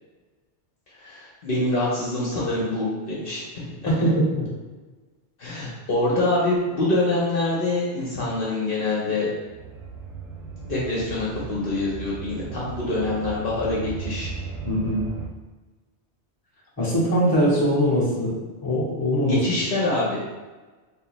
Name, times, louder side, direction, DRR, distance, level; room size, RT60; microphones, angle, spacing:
voice 1, 0.9-4.1 5.4-9.3 10.6-14.3 19.2-20.3, left 2 dB, 55° left, -6 dB, 1.0 m, -25 dB
voice 2, 3.9-4.5 14.6-15.0 16.8-18.3 18.6-19.4, equal, 20° left, -6 dB, 0.9 m, -21 dB
sound 1, 9.4-15.3, right 5 dB, 60° right, 0.6 m, -36 dB
3.4 x 3.2 x 3.1 m, 1.3 s
omnidirectional pair, 1.1 m